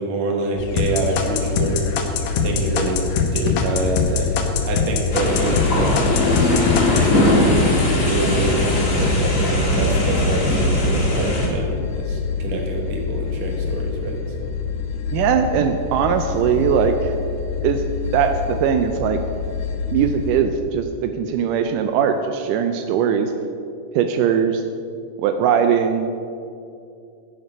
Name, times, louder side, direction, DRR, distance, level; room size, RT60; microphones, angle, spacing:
voice 1, 0.0-1.9 2.4-6.6 6.9-14.5, right 2 dB, 55° right, 1 dB, 2.3 m, -26 dB
sound 1, 0.6-20.5, left 6 dB, 90° left, 2.6 m, -27 dB
sound 2, 0.8-5.7 6.0-7.1, left 6 dB, 70° left, 2.2 m, -22 dB
sound 3, 5.1-11.5, left 1 dB, 40° left, 1.2 m, -20 dB
voice 2, 15.1-17.1 17.6-17.8 18.1-19.2 19.9-23.3 24.0-24.6 25.2-26.1, right 7 dB, 85° right, 6 dB, 1.8 m, -20 dB
10.0 x 9.6 x 5.3 m, 2.5 s
omnidirectional pair, 4.3 m